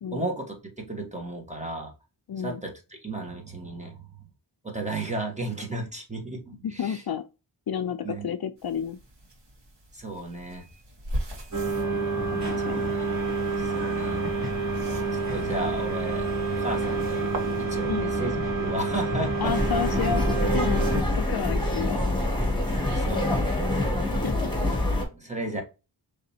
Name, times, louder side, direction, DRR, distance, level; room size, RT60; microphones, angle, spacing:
voice 1, 0.1-1.9 2.4-4.0 4.6-7.0 8.0-8.3 9.9-10.8 11.4-11.5 12.6-13.1 13.4-14.8 15.1-17.3 17.6-19.5 22.9-23.6 24.7-24.8 25.1-25.6, right 2 dB, 15° right, 1.6 m, -34 dB
voice 2, 2.3-2.6 6.6-7.2 7.7-8.0 8.2-9.0 12.3-12.9 17.9-18.1 19.4-22.0 24.2-24.5, left 8 dB, 60° left, 0.5 m, -31 dB
sound 1, 8.6-17.6, right 1 dB, 65° right, 1.7 m, -41 dB
sound 2, 11.5-21.0, right 3 dB, 40° right, 2.7 m, -28 dB
sound 3, 19.4-25.0, left 1 dB, 10° left, 1.8 m, -25 dB
5.2 x 3.4 x 2.8 m
wide cardioid pair, 75°, 44 cm